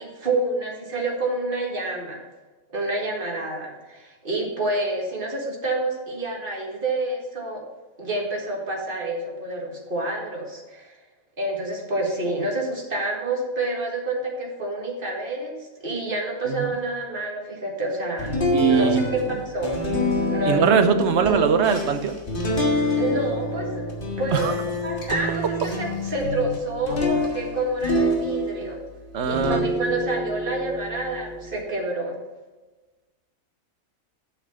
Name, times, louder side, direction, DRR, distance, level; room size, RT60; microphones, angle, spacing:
voice 1, 0.0-2.2 2.7-7.6 8.0-10.9 11.4-18.4 18.7-19.8 20.2-20.8 23.0-28.8 29.3-32.2, right 2 dB, 40° right, 0 dB, 2.0 m, -28 dB
sound 1, 18.2-28.8 29.2-31.6, left 1 dB, 40° left, 1.8 m, -26 dB
voice 2, 18.5-19.1 20.5-22.1 24.3-24.5 29.1-29.7, right 6 dB, 60° right, 9 dB, 1.0 m, -21 dB
8.1 x 5.8 x 6.8 m, 1.2 s
omnidirectional pair, 1.4 m